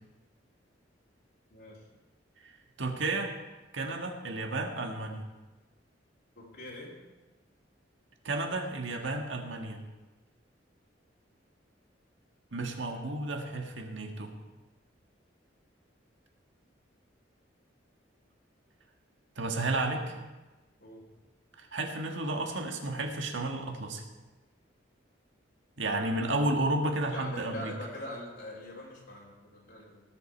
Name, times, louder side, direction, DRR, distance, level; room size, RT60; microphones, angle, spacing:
voice 1, 2.8-3.3 3.7-5.2 8.2-9.8 12.5-14.3 19.4-20.2 21.6-24.0 25.8-27.7, right 2 dB, 85° right, 3 dB, 1.6 m, -32 dB
voice 2, 6.4-6.9 12.8-13.1 19.5-20.0 20.8-21.0 27.1-30.0, left 1 dB, 65° left, -4 dB, 2.7 m, -43 dB
18.5 x 7.2 x 4.5 m, 1.2 s
head